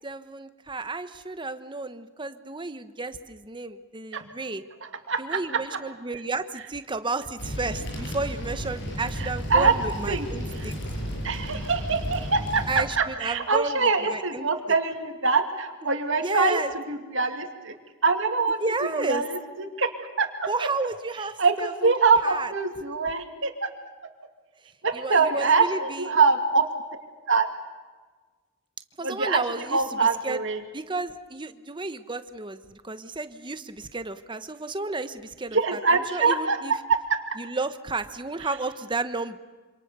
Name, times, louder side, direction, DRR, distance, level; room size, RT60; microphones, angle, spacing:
voice 1, 0.0-4.6 5.2-10.7 12.7-14.5 16.2-16.7 18.6-19.2 20.5-21.9 22.2-22.5 24.9-26.1 29.0-30.4 30.7-36.7 37.4-39.4, right 3 dB, 25° right, 10 dB, 1.2 m, -32 dB
voice 2, 4.8-5.4 9.2-9.7 10.1-10.3 10.6-10.7 11.2-12.6 13.0-16.6 16.9-17.7 18.0-18.6 18.9-19.9 20.2-20.7 21.4-23.7 24.8-26.6 27.3-27.5 29.0-30.6 35.5-36.6 36.9-37.0, right 4 dB, 65° right, 5 dB, 2.5 m, -24 dB
sound 1, 7.4-12.9, equal, 60° left, 7.8 m, -33 dB
27.0 x 26.5 x 6.9 m, 1.4 s
head